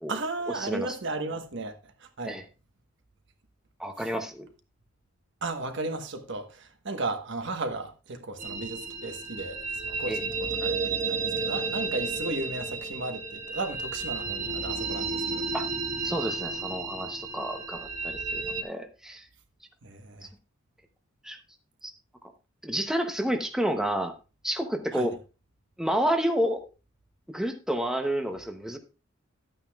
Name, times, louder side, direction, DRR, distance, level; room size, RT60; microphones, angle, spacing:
voice 1, 0.1-1.7 2.0-2.4 4.0-4.1 5.4-15.4 18.5-18.6 19.8-20.3 24.9-25.1, right 2 dB, 65° right, 1.2 m, -35 dB
voice 2, 0.6-1.0 2.3-2.4 3.8-4.5 10.1-10.2 15.5-15.7 16.0-19.3 21.2-21.4 21.8-21.9 22.6-24.1 24.4-25.1 25.8-26.7 27.3-28.8, equal, 5° right, 0.8 m, -30 dB
sound 1, 8.4-18.6, right 4 dB, 40° right, 1.4 m, -32 dB
12.0 x 8.9 x 2.3 m
head